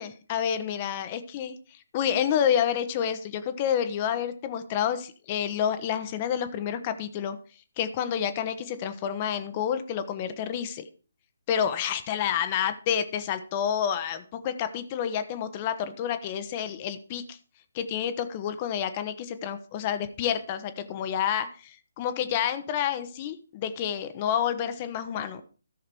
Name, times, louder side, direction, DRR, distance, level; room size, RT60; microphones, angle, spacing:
voice 1, 0.0-1.5 1.9-7.4 7.8-10.8 11.5-17.4 17.7-25.4, left 9 dB, 30° left, 11 dB, 1.0 m, -29 dB
14.0 x 6.5 x 4.5 m, 0.37 s
figure-of-eight pair, 140°, 0 cm